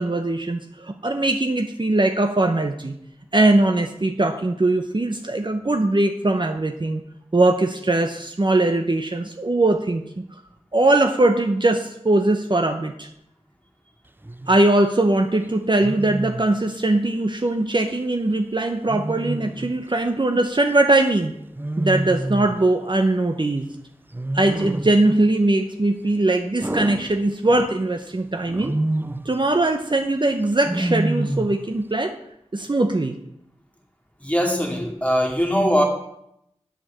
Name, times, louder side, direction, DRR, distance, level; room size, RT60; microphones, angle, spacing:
voice 1, 0.0-3.0 3.3-7.0 7.3-10.2 10.7-13.1 14.5-21.3 21.8-23.7 24.3-28.7 29.2-32.1 32.5-33.1, right 2 dB, 40° right, 5 dB, 0.8 m, -21 dB
Wild animals, 14.2-14.6 15.8-16.5 18.9-19.8 21.6-22.6 24.1-25.1 26.6-27.7 28.5-29.3 30.6-31.7, right 1 dB, 20° right, 0.5 m, -27 dB
voice 2, 34.2-35.8, equal, 10° left, 0 dB, 2.5 m, -21 dB
8.0 x 6.8 x 7.4 m, 0.78 s
wide cardioid pair, 45°, 12 cm